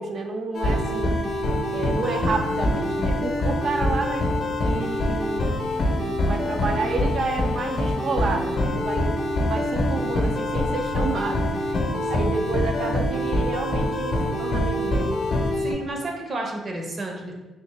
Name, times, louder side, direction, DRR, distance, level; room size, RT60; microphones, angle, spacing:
voice 1, 0.0-1.4 1.7-4.4 4.6-5.6 6.0-9.2 9.4-11.6 12.1-15.2, right 3 dB, 60° right, 3 dB, 0.4 m, -30 dB
sound 1, 0.5-15.7, left 1 dB, 55° left, 0.6 m, -25 dB
voice 2, 15.6-17.3, right 2 dB, 40° right, 1 dB, 0.7 m, -31 dB
3.3 x 2.7 x 3.2 m, 1.1 s
cardioid pair, 90°, 0 cm